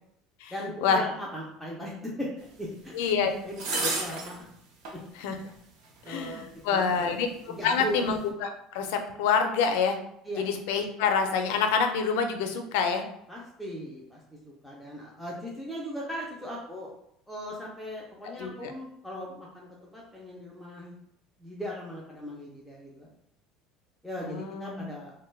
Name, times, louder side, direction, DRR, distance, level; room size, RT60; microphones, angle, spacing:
voice 1, 0.5-4.4 6.0-7.2 7.5-8.1 10.2-10.4 13.3-14.2 14.4-16.9 17.3-21.0 21.4-23.1 24.0-25.1, equal, ahead, -5 dB, 0.4 m, -38 dB
voice 2, 2.9-3.3 3.7-3.9 5.2-5.4 6.1-10.0 10.4-13.0 18.2-18.7 24.2-24.9, left 6 dB, 80° left, 6 dB, 0.4 m, -27 dB
sound 1, 3.0-3.1 3.6-4.4 4.9-5.0 6.1-6.2, right 3 dB, 55° right, 0.5 m, -30 dB
2.9 x 2.1 x 3.2 m, 0.75 s
cardioid pair, 175°, 0 cm